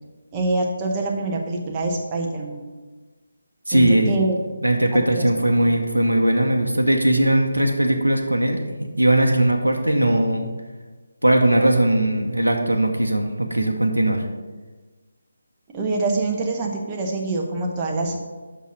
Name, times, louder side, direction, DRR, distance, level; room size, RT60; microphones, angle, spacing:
voice 1, 0.3-2.6 3.7-4.4 4.9-5.2 15.7-18.2, right 2 dB, 20° right, 0 dB, 0.9 m, -25 dB
voice 2, 3.7-4.2 4.6-10.5 11.2-14.3, right 1 dB, 80° right, 3 dB, 0.9 m, -19 dB
6.1 x 5.6 x 5.9 m, 1.3 s
figure-of-eight pair, 150°, 0 cm